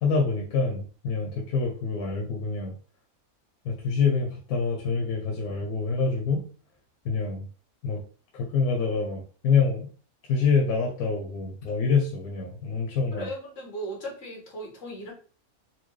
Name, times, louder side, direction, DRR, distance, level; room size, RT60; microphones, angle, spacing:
voice 1, 0.0-2.7 3.6-6.4 7.0-7.4 7.8-8.0 8.3-9.9 10.3-13.3, left 5 dB, 90° left, 0 dB, 1.3 m, -26 dB
voice 2, 13.1-15.1, right 1 dB, 55° left, -2 dB, 1.8 m, -37 dB
4.4 x 2.3 x 3.1 m, 0.38 s
omnidirectional pair, 1.5 m